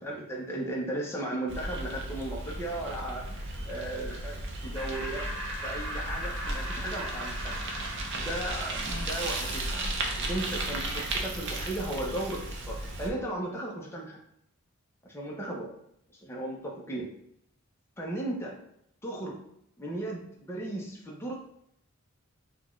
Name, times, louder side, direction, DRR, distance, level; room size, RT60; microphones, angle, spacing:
voice 1, 0.0-4.3 4.6-5.3 5.6-7.6 8.0-9.8 10.2-14.2 15.0-15.7 16.2-17.1 18.0-18.6 19.0-19.4 19.8-21.3, right 1 dB, 10° left, -3 dB, 0.7 m, -36 dB
Bicycle, 1.5-13.1, right 2 dB, 55° right, 0.6 m, -35 dB
Laughter, 4.7-10.0, equal, 85° right, 1.1 m, -39 dB
5.8 x 2.4 x 3.1 m, 0.72 s
head